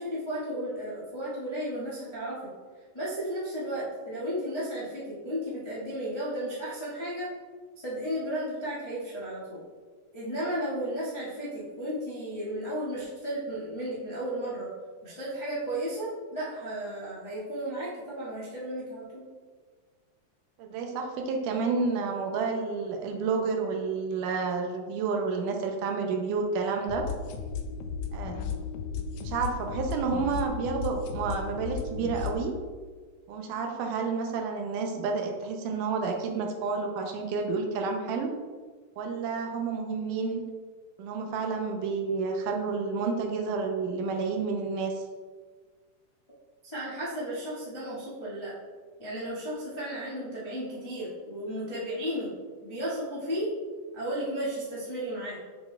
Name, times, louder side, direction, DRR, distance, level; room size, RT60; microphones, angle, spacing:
voice 1, 0.0-2.4 2.9-7.3 7.7-9.6 10.1-14.7 15.0-19.2 46.6-48.5 49.0-52.3 52.6-53.5 53.9-55.4, right 1 dB, 25° left, -9 dB, 0.5 m, -34 dB
voice 2, 20.6-27.1 28.1-28.4 29.0-32.5 33.3-38.3 39.0-40.4 41.0-45.0, right 4 dB, 80° right, 3 dB, 2.1 m, -30 dB
sound 1, 26.9-32.4, left 5 dB, 80° left, 1.9 m, -34 dB
6.7 x 6.6 x 2.3 m, 1.5 s
omnidirectional pair, 3.8 m